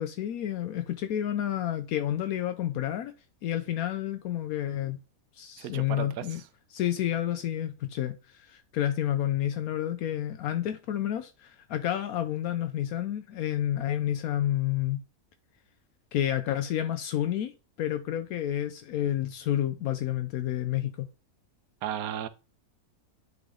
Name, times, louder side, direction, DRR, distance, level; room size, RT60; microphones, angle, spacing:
voice 1, 0.0-3.1 3.4-5.0 5.3-6.4 6.7-15.0 16.1-21.1, left 11 dB, 80° left, 1.1 m, -30 dB
voice 2, 5.6-6.3 21.8-22.3, right 10 dB, 80° right, 1.1 m, -34 dB
9.5 x 3.5 x 3.7 m
omnidirectional pair, 1.5 m